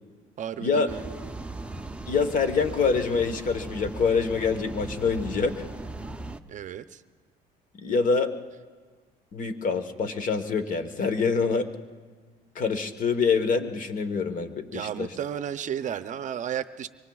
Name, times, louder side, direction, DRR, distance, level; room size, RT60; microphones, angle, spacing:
voice 1, 0.4-1.3 6.5-7.0 14.7-16.9, right 9 dB, 50° right, 12 dB, 0.6 m, -33 dB
sound 1, 0.9-6.4, right 2 dB, 5° right, 0.6 m, -38 dB
voice 2, 2.1-5.6 7.8-8.3 9.3-11.7 12.5-15.1, left 5 dB, 50° left, 9 dB, 1.2 m, -25 dB
25.5 x 24.0 x 2.4 m, 1.5 s
cardioid pair, 110°, 17 cm